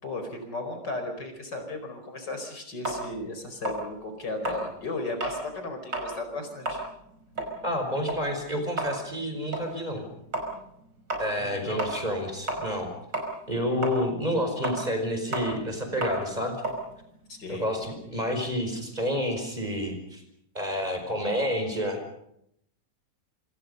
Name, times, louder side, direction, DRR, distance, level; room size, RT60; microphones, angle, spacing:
voice 1, 0.0-6.8 11.4-11.8 17.3-17.7 21.2-21.4, left 2 dB, 75° left, 6 dB, 5.3 m, -35 dB
sound 1, 2.8-5.5 5.8-6.2 6.5-12.9 13.1-17.9, right 2 dB, 80° right, 6.0 m, -33 dB
voice 2, 7.6-10.0 11.2-12.9 13.5-16.6 17.5-20.2 20.5-22.0, equal, 20° right, 5 dB, 5.4 m, -29 dB
27.5 x 25.5 x 5.5 m, 0.76 s
omnidirectional pair, 1.9 m